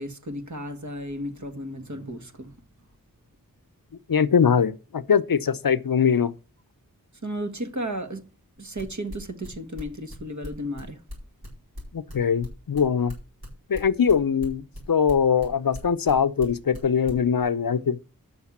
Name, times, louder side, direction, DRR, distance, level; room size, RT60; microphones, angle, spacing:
voice 1, 0.0-2.6 7.2-8.3 8.6-11.0, equal, 50° right, 1.7 m, -34 dB
voice 2, 4.1-6.3 11.9-13.2 13.7-18.0, left 7 dB, 70° left, 0.7 m, -22 dB
sound 1, 8.6-12.1 12.4-16.1 16.4-16.8 17.1-17.4, left 1 dB, 85° right, 6.8 m, -38 dB
10.0 x 6.6 x 7.3 m
wide cardioid pair, 45°, 36 cm